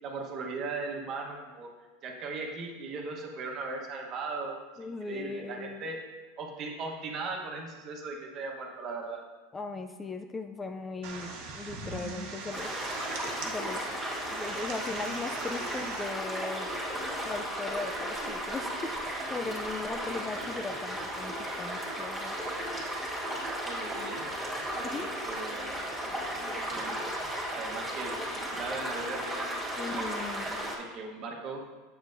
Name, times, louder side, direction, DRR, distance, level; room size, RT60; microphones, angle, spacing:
voice 1, 0.0-1.7 2.0-6.1 6.4-9.2 23.6-24.3 24.7-30.2 30.8-31.6, right 3 dB, 40° right, 1 dB, 1.2 m, -39 dB
voice 2, 4.8-5.9 9.5-12.7 13.4-13.8 14.3-16.7 17.2-22.4 24.8-25.1 29.7-30.6, left 3 dB, 15° left, 6 dB, 0.4 m, -38 dB
sound 1, 11.0-16.0, right 4 dB, 65° right, 1.3 m, -41 dB
sound 2, 12.5-30.8, right 1 dB, 10° right, 1.8 m, -35 dB
8.0 x 7.5 x 2.7 m, 1.3 s
supercardioid pair, 135°, 0 cm